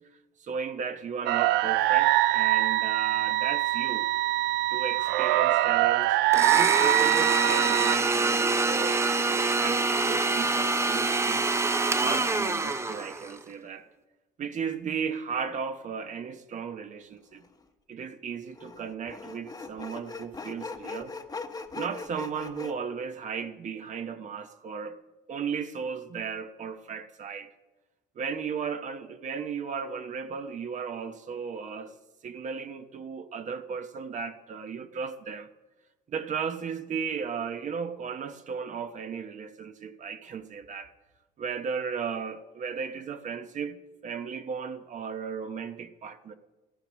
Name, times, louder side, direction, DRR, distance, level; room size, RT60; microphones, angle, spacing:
voice 1, 0.4-4.1 4.7-6.2 6.5-11.5 12.0-13.9 14.4-17.4 17.9-21.1 21.7-25.0 25.3-27.5 28.1-32.0 32.2-35.5 36.1-40.9 41.4-46.3, right 6 dB, 45° right, 1.1 m, -35 dB
sound 1, 1.3-8.0, right 15 dB, 85° right, 0.4 m, -24 dB
Domestic sounds home sounds, 6.3-13.4, right 3 dB, 15° right, 0.7 m, -26 dB
Sawing, 17.3-17.5 18.5-22.7, left 4 dB, 25° left, 1.1 m, -40 dB
14.5 x 11.5 x 6.3 m
cardioid pair, 110°, 17 cm